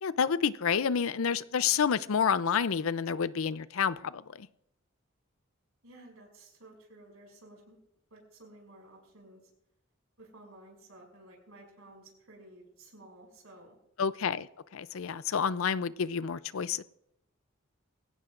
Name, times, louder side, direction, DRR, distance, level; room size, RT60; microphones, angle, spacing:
voice 1, 0.0-4.5 14.0-16.8, left 6 dB, 70° left, 16 dB, 0.5 m, -29 dB
voice 2, 5.8-7.8 8.1-9.4 10.2-13.8, right 1 dB, 75° right, 0 dB, 6.4 m, -54 dB
23.0 x 16.5 x 2.5 m, 0.81 s
head